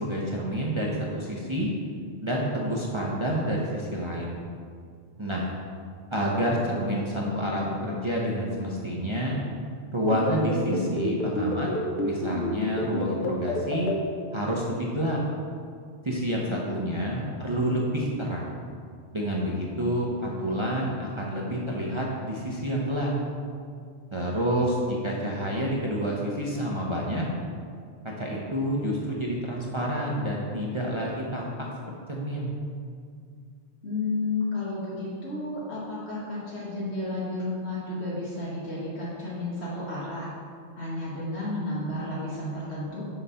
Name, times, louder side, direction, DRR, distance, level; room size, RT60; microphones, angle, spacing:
voice 1, 0.0-1.7 2.2-4.4 5.2-5.5 6.1-9.4 9.9-11.7 12.0-13.9 14.3-15.2 16.0-18.5 19.1-23.1 24.1-27.2 28.2-31.5 32.1-32.5, equal, 30° right, -4 dB, 0.7 m, -28 dB
voice 2, 6.8-7.5 16.4-17.4 19.7-20.0 33.8-40.3 40.8-43.0, left 2 dB, 65° left, -7 dB, 1.5 m, -32 dB
sound 1, 10.1-14.0, left 2 dB, 50° left, 0.9 m, -28 dB
5.8 x 4.1 x 5.5 m, 2.2 s
omnidirectional pair, 1.2 m